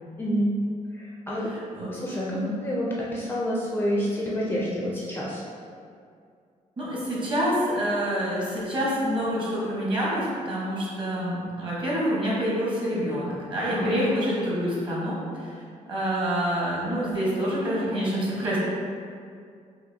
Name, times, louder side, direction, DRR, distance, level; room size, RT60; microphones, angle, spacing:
voice 1, 0.2-0.6 0.9-1.5 1.9-5.4 13.7-14.0, equal, 15° left, -5 dB, 0.4 m, -28 dB
voice 2, 1.4-1.9 2.3-2.6 6.8-15.5 15.9-18.6, equal, 35° right, -7 dB, 1.2 m, -27 dB
5.0 x 2.5 x 2.7 m, 2.3 s
cardioid pair, 150°, 14 cm